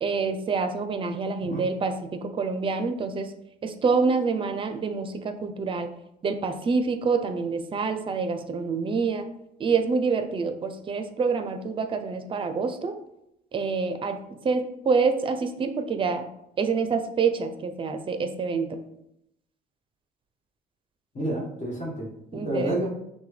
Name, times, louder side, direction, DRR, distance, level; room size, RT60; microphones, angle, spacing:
voice 1, 0.0-3.3 3.6-5.9 6.2-9.3 9.6-13.0 13.5-16.3 16.6-18.8 22.3-22.9, right 4 dB, 30° right, 8 dB, 0.5 m, -27 dB
voice 2, 21.1-22.9, right 1 dB, 45° left, -3 dB, 1.6 m, -30 dB
5.9 x 2.2 x 3.3 m, 0.80 s
cardioid pair, 110°, 17 cm